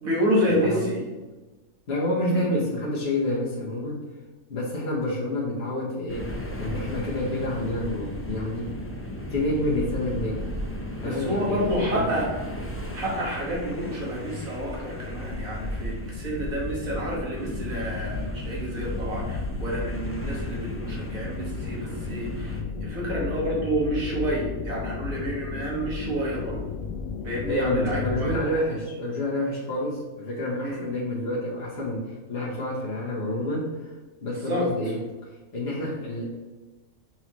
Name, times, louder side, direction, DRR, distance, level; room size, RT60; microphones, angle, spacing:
voice 1, 0.0-1.1 2.3-2.5 11.0-12.3 12.9-26.6 27.2-28.4 30.6-30.8 34.5-34.7, equal, 75° right, -4 dB, 2.2 m, -29 dB
voice 2, 0.6-1.0 1.9-4.0 4.5-6.3 6.6-8.8 9.3-10.4 11.0-12.1 27.5-33.9 34.2-35.0 35.3-36.4, left 1 dB, 50° left, -5 dB, 1.3 m, -28 dB
sound 1, 6.1-22.6, equal, 15° left, 0.5 m, -35 dB
sound 2, 13.0-28.4, left 5 dB, 80° left, 1.0 m, -35 dB
5.9 x 5.6 x 3.1 m, 1.2 s
omnidirectional pair, 1.5 m